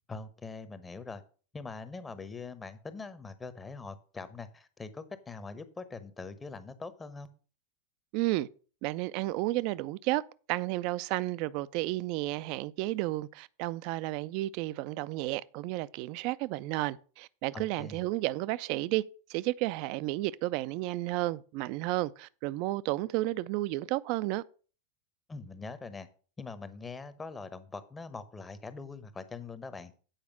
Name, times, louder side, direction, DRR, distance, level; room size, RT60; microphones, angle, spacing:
voice 1, 0.1-1.2 1.5-7.3 17.5-18.0 25.3-26.1 26.4-29.9, left 4 dB, 15° left, 0.9 m, -43 dB
voice 2, 8.1-8.5 8.8-10.2 10.5-19.0 19.3-24.4, right 18 dB, 45° right, 0.4 m, -32 dB
8.9 x 4.9 x 6.1 m
figure-of-eight pair, 90°, 0 cm